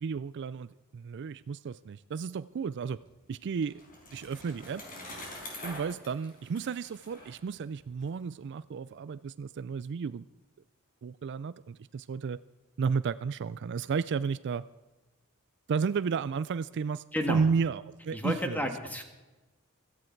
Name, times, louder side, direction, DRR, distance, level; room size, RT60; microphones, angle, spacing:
voice 1, 0.0-3.0 3.3-3.8 4.1-4.8 5.6-10.3 11.0-12.4 12.8-14.6 15.7-18.7, right 5 dB, 55° right, 16 dB, 0.4 m, -33 dB
Bicycle, 3.2-8.1, left 1 dB, 40° left, 4.8 m, -46 dB
voice 2, 17.1-17.4 18.1-19.0, equal, 10° left, 5 dB, 1.8 m, -31 dB
16.5 x 14.5 x 4.6 m, 1.2 s
head